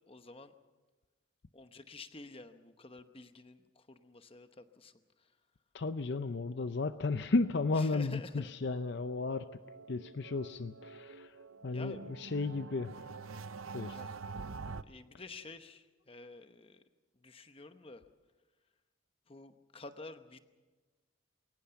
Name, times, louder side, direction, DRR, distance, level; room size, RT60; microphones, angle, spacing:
voice 1, 0.1-0.5 1.5-5.3 7.7-8.5 11.7-12.1 13.9-14.2 14.8-16.8 17.1-18.0 19.3-20.4, left 3 dB, 25° left, 9 dB, 0.9 m, -50 dB
voice 2, 5.7-9.5 9.9-11.3 11.6-12.9 13.7-14.0, left 3 dB, 55° left, 11 dB, 0.6 m, -34 dB
sound 1, 8.7-14.8, right 4 dB, 85° right, 0.7 m, -46 dB
22.0 x 19.0 x 7.0 m, 1.3 s
head